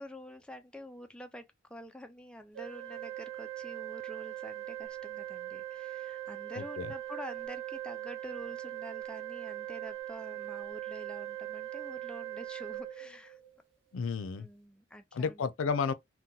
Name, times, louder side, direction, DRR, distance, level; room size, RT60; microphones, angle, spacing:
voice 1, 0.0-13.4 14.4-15.4, equal, 5° left, 0.3 m, -47 dB
Organ, 2.6-13.6, right 14 dB, 65° right, 0.6 m, -41 dB
voice 2, 6.6-6.9 13.9-14.5 15.1-15.9, left 5 dB, 85° left, 0.4 m, -32 dB
2.8 x 2.1 x 3.7 m
head